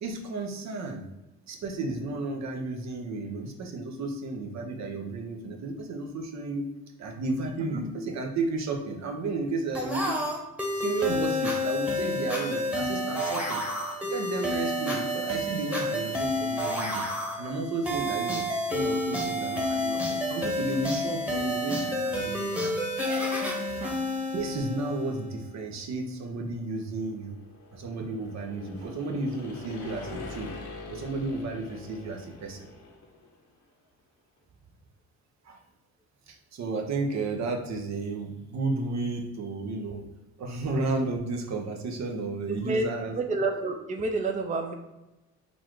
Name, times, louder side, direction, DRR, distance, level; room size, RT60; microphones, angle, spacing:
voice 1, 0.0-1.1 1.5-6.7 7.0-10.2 10.8-13.6 14.1-17.0 17.4-22.8 24.3-27.4 27.7-30.5 30.9-32.7 35.4-35.6 36.3-40.0 40.4-43.2, right 3 dB, 65° right, 3 dB, 0.8 m, -33 dB
sound 1, 9.7-25.2, left 1 dB, 5° right, 1.1 m, -30 dB
sound 2, 26.5-33.4, left 3 dB, 85° left, 1.1 m, -44 dB
voice 2, 42.5-42.8 43.2-44.7, right 3 dB, 25° right, 4 dB, 0.5 m, -29 dB
4.0 x 2.4 x 4.6 m, 0.99 s
cardioid pair, 90°, 30 cm